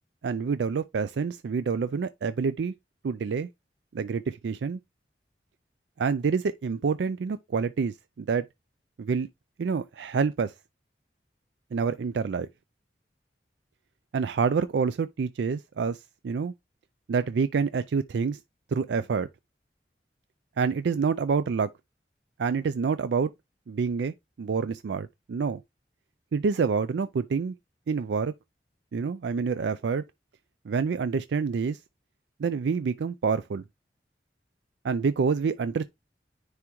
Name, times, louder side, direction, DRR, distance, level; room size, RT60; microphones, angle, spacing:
voice 1, 0.2-2.7 3.0-3.5 3.9-4.8 6.0-8.4 9.0-9.3 9.6-10.5 11.7-12.5 14.1-16.5 17.1-18.4 18.7-19.3 20.6-21.7 22.4-23.3 23.7-25.6 26.3-27.6 27.9-28.3 28.9-30.0 30.7-31.8 32.4-33.6 34.8-35.8, right 5 dB, 80° right, 0.4 m, -27 dB
9.7 x 3.5 x 3.0 m
head